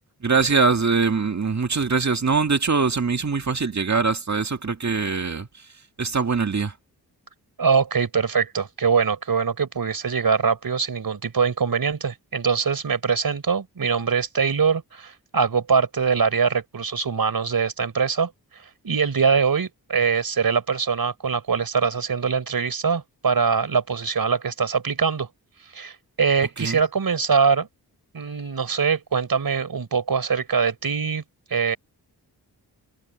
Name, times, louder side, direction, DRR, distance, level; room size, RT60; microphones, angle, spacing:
voice 1, 0.2-5.7 6.0-6.7 26.6-26.8, right 4 dB, 45° right, 1.9 m, -22 dB
voice 2, 7.6-18.3 18.8-25.3 25.7-27.7 28.1-31.2 31.5-31.8, right 5 dB, 60° right, 4.2 m, -23 dB
cardioid pair, 50°, 39 cm